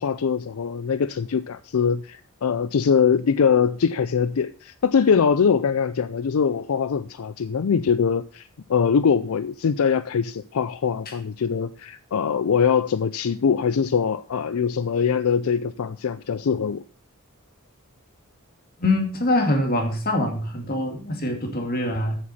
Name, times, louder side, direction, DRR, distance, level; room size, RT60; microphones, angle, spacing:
voice 1, 0.0-16.8, left 6 dB, 75° left, 0.4 m, -22 dB
voice 2, 18.8-22.2, left 1 dB, 45° left, 2.3 m, -24 dB
8.4 x 7.6 x 5.6 m
head